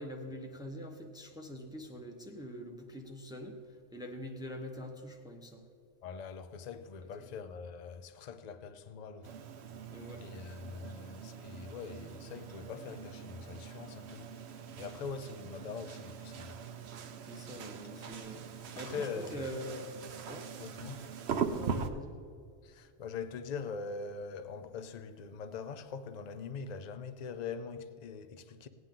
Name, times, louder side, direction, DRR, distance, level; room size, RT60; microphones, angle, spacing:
voice 1, 0.0-5.7 7.0-7.3 9.9-10.3 17.2-19.9 20.3-20.5 21.5-22.2, equal, 5° right, 0.8 m, -44 dB
voice 2, 6.0-9.4 10.2-14.3 14.8-16.5 18.8-19.5 20.6-21.0 22.6-28.7, left 5 dB, 45° left, 0.6 m, -43 dB
sound 1, 9.2-21.9, right 6 dB, 65° right, 0.9 m, -42 dB
18.0 x 9.3 x 3.8 m
omnidirectional pair, 1.2 m